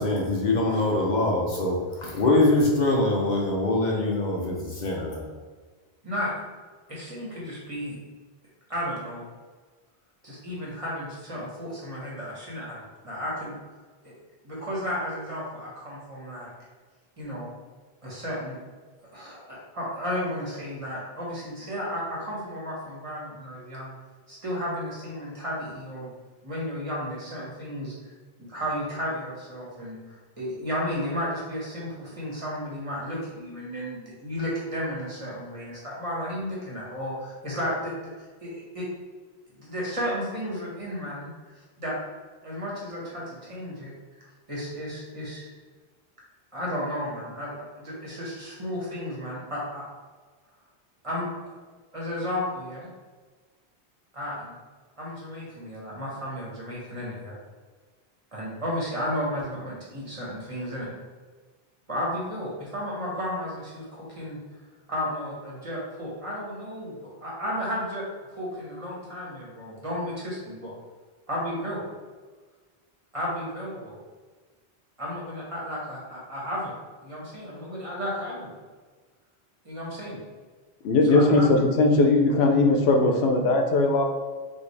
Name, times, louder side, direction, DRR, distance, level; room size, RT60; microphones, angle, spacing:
voice 1, 0.0-5.3, left 2 dB, 50° left, -2 dB, 0.7 m, -23 dB
voice 2, 6.9-8.0 8.7-9.3 10.2-13.5 14.0-14.1 14.4-16.5 17.2-17.5 18.0-18.6 19.1-23.9 24.3-26.1 26.4-27.9 28.4-38.1 38.4-38.8 39.5-42.0 42.4-45.5 46.5-49.8 51.0-51.5 51.9-52.9 54.1-54.5 55.0-57.4 58.3-60.9 61.9-64.4 64.9-68.0 68.3-70.7 71.3-71.8 73.1-74.0 75.0-76.7 77.0-78.5 79.6-80.2 81.1-81.5, equal, 35° right, -6 dB, 1.4 m, -33 dB
voice 3, 80.8-84.0, left 2 dB, 90° left, 4 dB, 0.9 m, -19 dB
5.3 x 2.7 x 3.2 m, 1.4 s
omnidirectional pair, 1.0 m